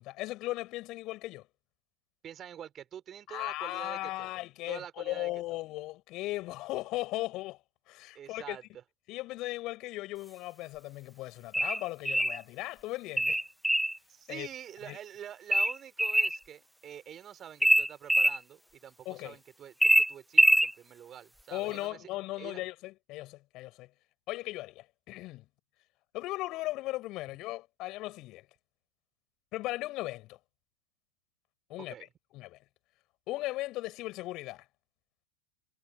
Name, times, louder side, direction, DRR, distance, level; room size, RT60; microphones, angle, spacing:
voice 1, 0.0-1.5 3.3-7.6 7.9-8.6 9.1-13.4 14.3-14.5 14.9-15.0 19.0-19.4 21.5-23.9 24.3-25.4 26.1-28.4 29.5-30.4 31.7-31.9 32.3-32.6 33.3-34.6, left 18 dB, 40° left, 6.7 m, -37 dB
voice 2, 2.2-4.3 4.7-5.3 8.1-8.6 14.1-22.0 22.4-22.6 31.9-32.1, right 10 dB, 25° right, 5.9 m, -46 dB
sound 1, 11.5-12.4 13.2-14.0 15.5-16.4 17.6-18.4 19.8-20.7, equal, ahead, 0.9 m, -23 dB
figure-of-eight pair, 90°, 0 cm